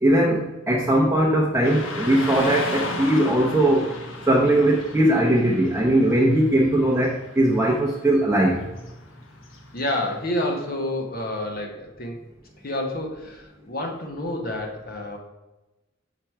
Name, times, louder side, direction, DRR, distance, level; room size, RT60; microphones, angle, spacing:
voice 1, 0.0-3.9 4.3-8.6, right 1 dB, 10° right, -3 dB, 0.7 m, -20 dB
Car passing by / Traffic noise roadway noise, 1.6-10.7, left 2 dB, 85° left, 1.0 m, -36 dB
voice 2, 9.7-12.2 12.6-15.2, left 1 dB, 50° left, 2 dB, 0.9 m, -29 dB
5.8 x 4.5 x 4.6 m, 1.0 s
head